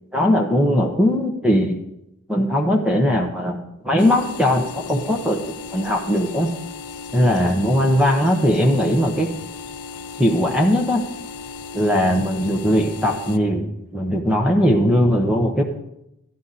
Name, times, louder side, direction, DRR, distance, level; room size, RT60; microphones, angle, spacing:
voice 1, 0.1-1.8 2.3-3.6 3.8-6.5 7.1-9.3 10.2-11.0 11.7-13.7 13.9-15.6, equal, 5° right, 2 dB, 0.9 m, -19 dB
sound 1, 4.0-13.4, left 5 dB, 80° left, 0.7 m, -36 dB
12.5 x 11.5 x 4.1 m, 0.83 s
head